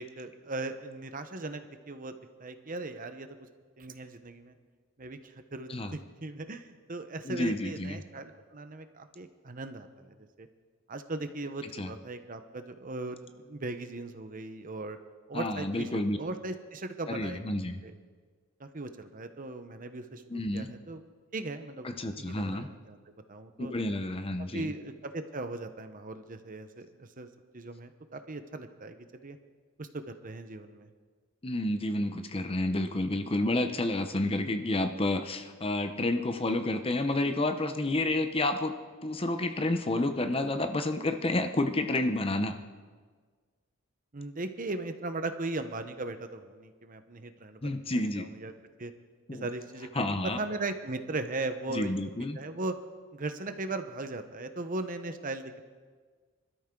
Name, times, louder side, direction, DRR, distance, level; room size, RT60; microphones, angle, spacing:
voice 1, 0.0-2.1 2.4-3.3 3.8-4.5 5.0-10.5 10.9-15.0 15.3-17.4 17.8-17.9 18.6-20.2 20.5-21.0 21.3-21.9 22.2-23.0 23.3-23.7 24.5-27.3 27.5-29.4 29.8-30.9 44.1-48.5 48.8-48.9 49.3-51.9 52.3-52.7 53.1-55.6, right 2 dB, 40° right, 8 dB, 1.0 m, -38 dB
voice 2, 7.2-8.0 11.8-11.9 15.3-16.2 17.1-17.8 20.3-20.7 21.8-22.7 23.6-24.7 31.4-38.7 39.0-42.6 47.6-48.3 49.3-49.5 50.0-50.4 51.7-52.4, left 2 dB, 25° left, 8 dB, 0.8 m, -30 dB
25.5 x 13.0 x 3.8 m, 1.5 s
head